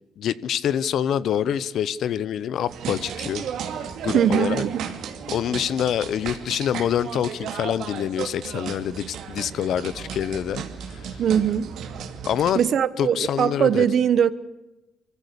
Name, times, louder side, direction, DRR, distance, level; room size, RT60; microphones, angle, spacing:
voice 1, 0.2-3.4 4.0-4.6 5.3-10.6 10.9-11.0 12.2-12.6 13.0-13.8, left 9 dB, 70° left, 0.9 m, -26 dB
sound 1, 2.7-12.5, right 7 dB, 80° right, 2.5 m, -34 dB
voice 2, 4.1-4.9 11.2-11.7 12.5-14.3, right 8 dB, 65° right, 1.1 m, -21 dB
24.5 x 15.5 x 8.3 m
cardioid pair, 90°, 0 cm